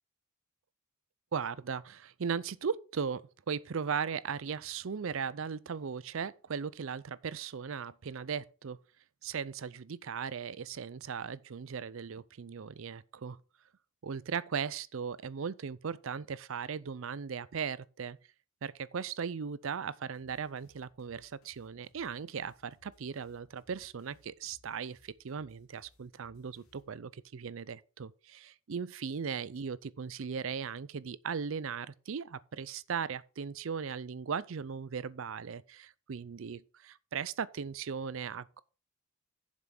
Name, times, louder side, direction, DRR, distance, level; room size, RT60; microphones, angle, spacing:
voice 1, 1.3-8.8 9.2-13.4 14.0-18.2 18.6-38.6, right 6 dB, 65° right, 0.5 m, -38 dB
sound 1, 20.1-27.3, left 1 dB, 80° left, 2.2 m, -67 dB
7.4 x 5.8 x 6.4 m
head